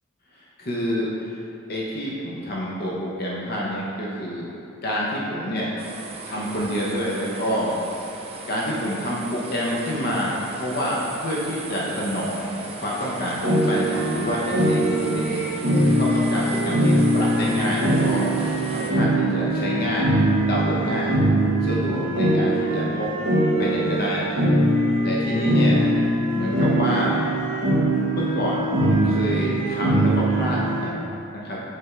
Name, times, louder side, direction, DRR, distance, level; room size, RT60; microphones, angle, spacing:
voice 1, 0.6-1.4 1.7-4.5 4.8-5.7 6.2-7.8 8.5-18.4 18.7-20.2 20.5-21.2 21.6-23.1 23.6-24.4 25.0-25.9 26.3-27.3 28.1-31.6, equal, 50° left, -5 dB, 0.8 m, -27 dB
sound 1, 5.8-18.9, right 3 dB, 30° right, 0.5 m, -37 dB
sound 2, 13.4-30.9, right 1 dB, 65° right, 1.1 m, -22 dB
6.7 x 3.4 x 4.4 m, 2.7 s
head